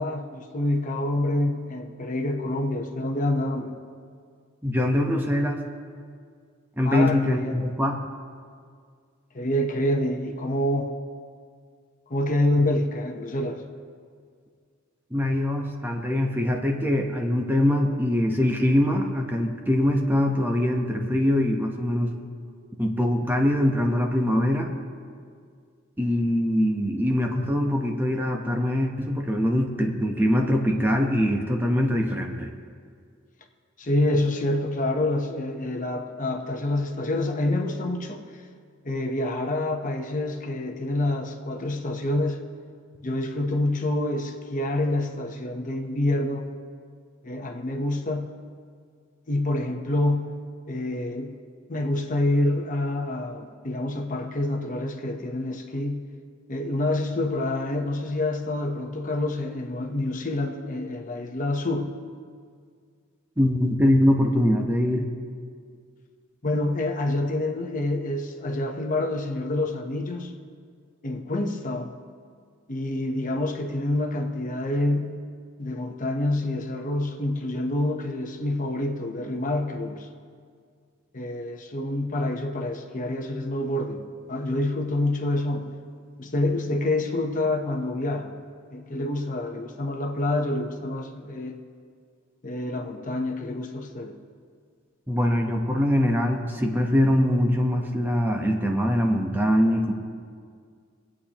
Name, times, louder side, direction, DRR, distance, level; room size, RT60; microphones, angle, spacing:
voice 1, 0.0-3.7 6.9-7.7 9.3-10.9 12.1-13.6 33.8-38.2 38.8-42.4 43.0-46.5 47.2-48.3 49.3-50.3 50.7-51.3 51.7-56.0 56.5-61.9 66.4-70.3 71.0-71.9 72.7-75.1 75.6-80.1 81.1-84.0 84.3-85.7 86.2-88.3 88.7-91.6 92.4-94.2, left 1 dB, 40° left, 4 dB, 0.9 m, -27 dB
voice 2, 4.6-5.6 6.8-8.0 15.1-22.2 22.8-24.7 26.0-32.5 63.4-65.1 95.1-99.9, left 1 dB, 10° right, 1 dB, 0.9 m, -23 dB
25.0 x 8.5 x 3.0 m, 2.1 s
head